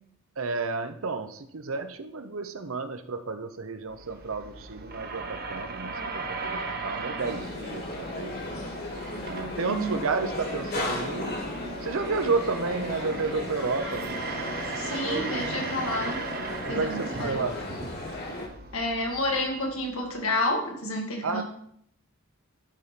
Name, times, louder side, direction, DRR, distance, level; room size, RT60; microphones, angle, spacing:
voice 1, 0.4-8.3 9.2-11.4 11.8-14.2 15.0-15.4 16.7-17.6 21.2-21.4, right 4 dB, 75° right, 9 dB, 0.8 m, -31 dB
sound 1, 3.9-20.3, right 3 dB, 45° right, 0.9 m, -38 dB
sound 2, 7.2-18.5, left 2 dB, 45° left, 1.8 m, -36 dB
voice 2, 9.6-10.0 14.8-16.2 16.7-17.5 18.7-21.4, left 1 dB, 85° left, 1 dB, 2.0 m, -30 dB
11.0 x 4.3 x 5.1 m, 0.68 s
head